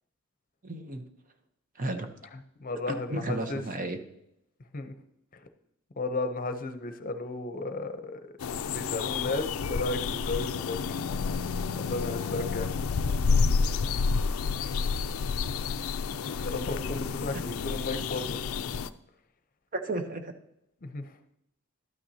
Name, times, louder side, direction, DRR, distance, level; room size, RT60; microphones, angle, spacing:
voice 1, 0.6-1.0 1.8-2.1 2.9-4.0 17.3-17.4 19.7-20.3, right 2 dB, 40° right, 7 dB, 0.9 m, -33 dB
voice 2, 2.3-3.6 4.7-4.9 6.0-8.3 8.5-11.0 11.8-12.7 16.1-18.4 20.8-21.1, left 2 dB, 40° left, 8 dB, 0.7 m, -34 dB
sound 1, 8.4-18.9, left 5 dB, 80° left, 0.4 m, -29 dB
12.0 x 9.0 x 2.8 m, 0.79 s
head